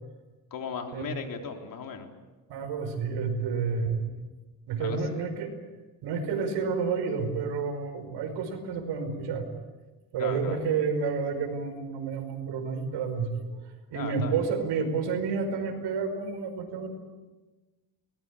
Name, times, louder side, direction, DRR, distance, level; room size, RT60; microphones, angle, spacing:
voice 1, 0.5-2.1 4.8-5.3 10.2-10.7 13.9-14.4, left 6 dB, 50° left, 4 dB, 3.7 m, -37 dB
voice 2, 2.5-4.1 4.7-5.5 6.0-9.4 10.1-13.6 13.9-16.9, right 5 dB, 80° right, 7 dB, 5.1 m, -30 dB
23.5 x 20.5 x 8.5 m, 1.2 s
cardioid pair, 130°, 41 cm